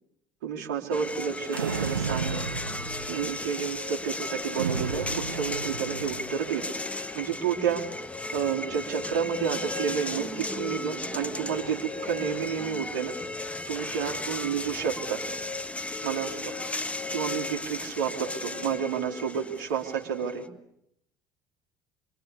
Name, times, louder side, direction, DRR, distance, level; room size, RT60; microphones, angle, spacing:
voice 1, 0.4-2.4 3.1-6.7 7.1-7.8 8.3-13.1 13.7-15.2 16.0-16.6 17.1-20.5, right 7 dB, 70° right, 0 dB, 3.6 m, -30 dB
sound 1, 0.9-20.5, left 2 dB, 10° left, 1.7 m, -35 dB
sound 2, 1.5-3.4 4.5-6.3, right 5 dB, 85° right, 1.0 m, -33 dB
sound 3, 10.0-12.5 12.9-13.0 13.4-13.6 14.7-14.8, right 4 dB, 30° right, 7.9 m, -49 dB
25.5 x 25.0 x 8.4 m, 0.76 s
figure-of-eight pair, 60°, 11 cm